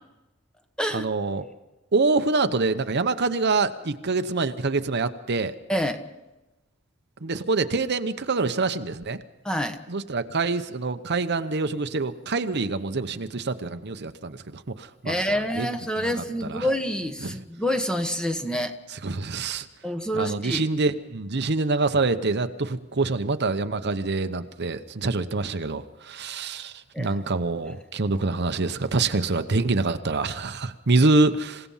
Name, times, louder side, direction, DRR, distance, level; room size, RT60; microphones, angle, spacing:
voice 1, 0.9-1.4 1.9-5.5 7.2-9.2 9.9-15.2 15.6-15.7 16.0-16.1 16.5-16.7 17.2-17.4 18.9-19.7 20.1-31.7, right 3 dB, 55° right, 9 dB, 0.9 m, -25 dB
voice 2, 9.4-9.8 15.0-18.7 19.8-20.6 26.9-27.2, equal, 5° left, 7 dB, 1.2 m, -27 dB
28.0 x 17.0 x 5.6 m, 1.0 s
head